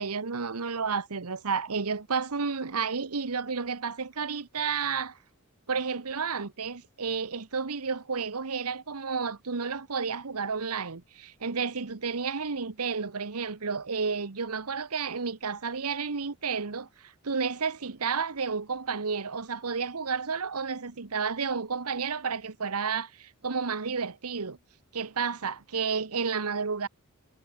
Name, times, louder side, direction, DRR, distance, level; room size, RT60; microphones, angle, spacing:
voice 1, 0.0-5.2 5.7-24.6 24.9-26.9, right 5 dB, 80° right, 1.1 m, -31 dB
head